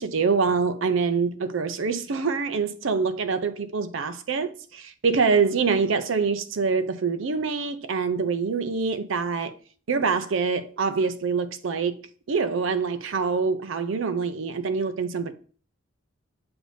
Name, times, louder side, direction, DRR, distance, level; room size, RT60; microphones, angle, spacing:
voice 1, 0.0-9.5 9.9-12.0 12.3-15.3, right 5 dB, 70° right, 0.5 m, -25 dB
7.8 x 2.6 x 4.9 m
head